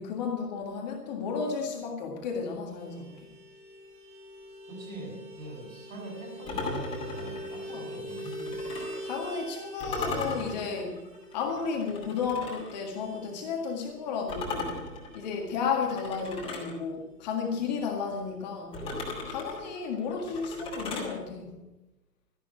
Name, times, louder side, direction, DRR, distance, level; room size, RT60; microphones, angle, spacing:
voice 1, 0.0-3.3 7.7-7.8 9.0-11.0 11.3-14.9 15.1-18.8 19.2-21.6, left 5 dB, 25° left, 2 dB, 1.8 m, -33 dB
Vehicle horn car horn honking, 2.8-16.7 16.9-17.1 17.4-17.6 17.8-18.5, equal, 15° right, 4.4 m, -44 dB
voice 2, 4.7-8.7, right 1 dB, 55° right, 0 dB, 7.4 m, -43 dB
sound 1, 6.5-9.0 9.8-12.8 14.3-16.8 18.7-21.1, left 3 dB, 10° left, 2.6 m, -37 dB
13.5 x 11.5 x 7.2 m, 1.0 s
figure-of-eight pair, 140°, 48 cm